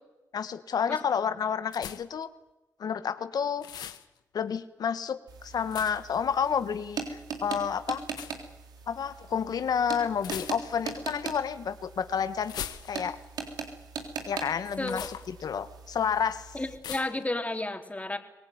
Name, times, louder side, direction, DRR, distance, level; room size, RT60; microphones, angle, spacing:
voice 1, 0.3-2.3 2.8-3.6 4.3-8.0 8.9-13.2 14.2-16.5, left 7 dB, 75° left, 12 dB, 1.3 m, -30 dB
sound 1, 1.7-2.2 3.6-4.0 5.7-6.1 8.1-8.4 10.2-10.9 12.4-13.2 14.8-15.3 16.8-17.2, left 10 dB, 90° left, 1.2 m, -40 dB
sound 2, 5.3-16.8, right 5 dB, 80° right, 3.7 m, -41 dB
voice 2, 16.5-18.2, left 2 dB, 20° left, 5 dB, 3.7 m, -32 dB
24.5 x 18.0 x 9.5 m, 0.99 s
supercardioid pair, 45°, 7 cm